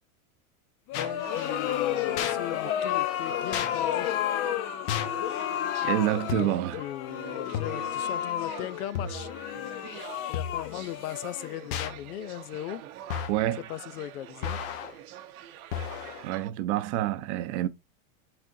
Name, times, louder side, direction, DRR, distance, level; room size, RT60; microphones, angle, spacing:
voice 1, 0.9-4.1 6.4-9.3 10.3-12.8 13.6-14.6, left 14 dB, 85° left, 0.7 m, -38 dB
sound 1, 0.9-1.1 2.2-2.4 3.5-3.7 4.9-5.2 6.3-6.7 7.5-7.9 8.9-9.4 10.3-10.8 11.7-12.0 13.1-13.5 14.4-14.9 15.7-16.2, left 8 dB, 50° left, 1.1 m, -33 dB
sound 2, 0.9-11.9, left 12 dB, 35° left, 0.4 m, -31 dB
sound 3, 0.9-16.5, right 11 dB, 80° right, 0.9 m, -45 dB
voice 2, 5.8-6.8 13.3-13.6 16.2-17.7, right 13 dB, 55° right, 0.7 m, -27 dB
8.6 x 4.3 x 2.7 m
supercardioid pair, 135°, 43 cm